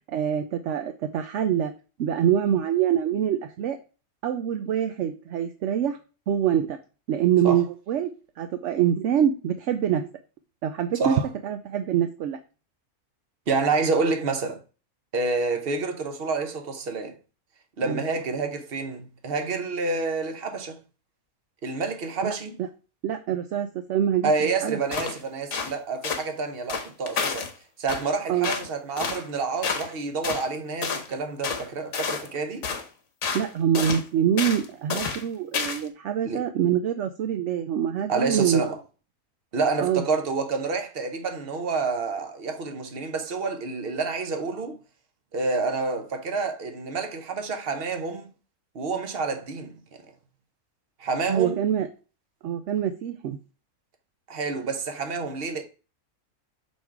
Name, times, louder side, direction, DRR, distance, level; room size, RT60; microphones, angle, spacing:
voice 1, 0.1-1.7 2.0-3.8 4.2-6.0 6.3-6.8 7.1-8.1 8.4-10.1 10.6-11.1 11.4-12.4 17.8-18.0 22.2-22.3 23.0-24.8 28.3-28.5 33.3-38.7 39.8-40.0 51.3-51.9 52.4-53.4, right 9 dB, 65° right, 0.8 m, -25 dB
voice 2, 10.9-11.3 13.5-14.6 15.1-17.2 17.8-20.8 21.6-22.6 24.2-27.5 27.8-32.6 36.2-36.4 38.1-38.8 39.5-44.8 45.3-48.3 48.7-49.7 51.0-51.6 54.3-55.6, right 4 dB, 45° right, 1.0 m, -28 dB
sound 1, 24.9-25.2 25.5-25.7 26.0-26.3 26.7-27.5 27.9-28.1 28.4-28.7 29.0-29.2 29.6-29.9 30.2-30.5 30.8-31.1 31.4-31.7 31.9-32.3 32.6-32.9 33.2-33.5 33.7-34.0 34.4-34.7 34.9-35.2 35.5-35.9, left 5 dB, 60° left, 1.3 m, -29 dB
6.3 x 3.7 x 4.5 m
omnidirectional pair, 1.5 m